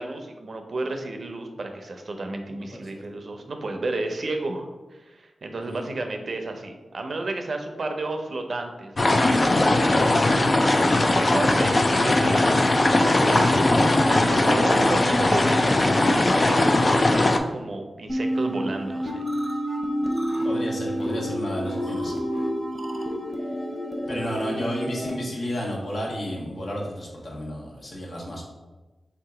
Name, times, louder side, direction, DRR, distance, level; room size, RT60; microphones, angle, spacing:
voice 1, 0.0-10.4 10.9-13.6 14.1-19.2, right 2 dB, 60° right, 4 dB, 0.5 m, -32 dB
voice 2, 2.5-3.0 5.6-5.9 13.5-14.6 14.9-15.0 20.4-22.2 24.1-28.4, equal, 60° left, -3 dB, 1.1 m, -32 dB
sound 1, 9.0-17.4, left 2 dB, 40° left, 0.3 m, -19 dB
sound 2, 18.1-25.1, equal, ahead, 0.8 m, -29 dB
3.5 x 2.8 x 4.7 m, 1.2 s
wide cardioid pair, 80°, 0 cm